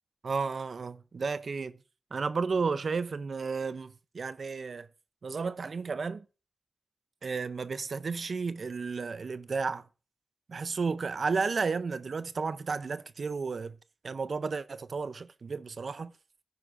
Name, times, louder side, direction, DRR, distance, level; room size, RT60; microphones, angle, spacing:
voice 1, 0.2-1.8 2.1-4.9 5.2-6.2 7.2-9.8 10.5-13.7 14.0-16.1, right 4 dB, 70° right, 0.5 m, -33 dB
11.0 x 9.5 x 2.5 m
cardioid pair, 40°, 0 cm